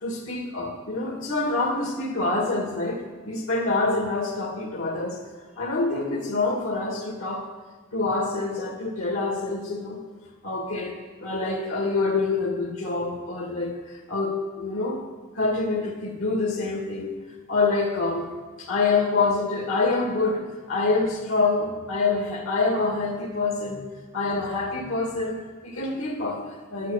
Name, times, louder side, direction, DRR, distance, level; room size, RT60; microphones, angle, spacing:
voice 1, 0.0-5.2 5.6-7.5 7.9-10.0 10.4-15.0 15.3-17.1 17.5-18.3 18.6-23.9 24.1-26.9, left 3 dB, 80° left, 1 dB, 2.1 m, -26 dB
10.0 x 8.1 x 8.5 m, 1.4 s
head